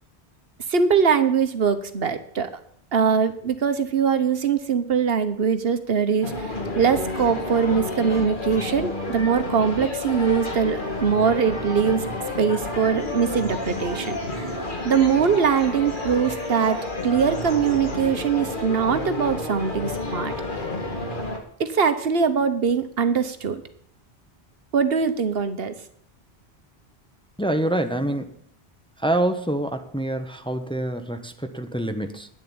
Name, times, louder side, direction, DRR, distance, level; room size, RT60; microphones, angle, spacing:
voice 1, 0.7-2.5 2.9-12.1 12.4-14.6 14.8-16.8 17.0-20.7 21.6-23.6 24.7-25.7, right 6 dB, 65° right, 10 dB, 1.3 m, -22 dB
sound 1, 6.2-21.4, left 2 dB, 50° left, 2.1 m, -30 dB
voice 2, 27.4-28.3 29.0-32.3, right 1 dB, 5° left, 7 dB, 0.9 m, -26 dB
10.0 x 7.6 x 8.7 m, 0.64 s
omnidirectional pair, 1.1 m